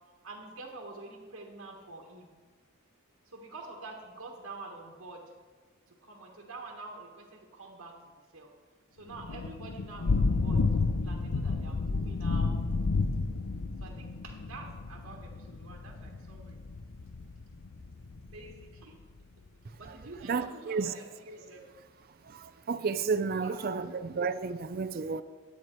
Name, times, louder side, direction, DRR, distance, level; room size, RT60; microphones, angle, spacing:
voice 1, 0.2-2.3 3.2-5.2 5.9-8.0 8.3-8.5 9.0-10.6 11.0-12.5 13.8-16.6 18.3-19.0 19.7-21.7 23.4-23.8, right 3 dB, 65° right, -2 dB, 1.4 m, -47 dB
Thunder / Rain, 9.1-18.6, left 3 dB, 85° left, 0.6 m, -31 dB
voice 2, 20.2-20.9 22.3-25.2, right 5 dB, 45° right, 11 dB, 0.4 m, -32 dB
10.5 x 9.4 x 4.5 m, 1.4 s
head